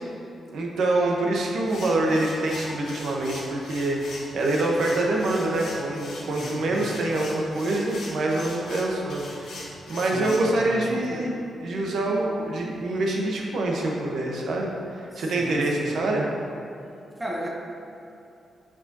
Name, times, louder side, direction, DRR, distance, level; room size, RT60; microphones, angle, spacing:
voice 1, 0.5-9.5 9.9-11.3 11.6-14.7 15.2-16.2, right 2 dB, 65° right, -1 dB, 0.8 m, -25 dB
sound 1, 1.6-10.5, left 2 dB, 80° left, 1.1 m, -41 dB
voice 2, 6.4-6.9 10.1-11.3 15.1-16.0 17.2-17.5, right 1 dB, 10° right, -3 dB, 0.7 m, -36 dB
8.4 x 4.8 x 2.7 m, 2.6 s
wide cardioid pair, 160°, 0 cm